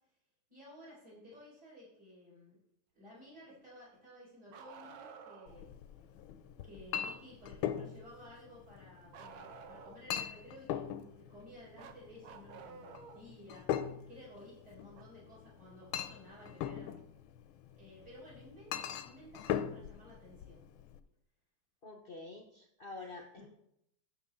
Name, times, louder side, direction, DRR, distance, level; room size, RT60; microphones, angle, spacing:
voice 1, 0.5-2.6 2.9-5.7 6.6-16.9 17.8-20.7 23.0-23.5, left 1 dB, 55° right, -8 dB, 5.2 m, -55 dB
Bark, 4.5-5.6 9.1-10.2 11.8-13.3 14.9-15.0 17.0-17.1 18.2-18.3, right 6 dB, 85° right, 1.6 m, -51 dB
Chink clink, 5.5-21.0, left 9 dB, 90° left, 1.4 m, -41 dB
voice 2, 21.8-23.5, left 3 dB, 60° left, 2 dB, 0.5 m, -47 dB
11.0 x 7.4 x 3.7 m, 0.77 s
omnidirectional pair, 2.1 m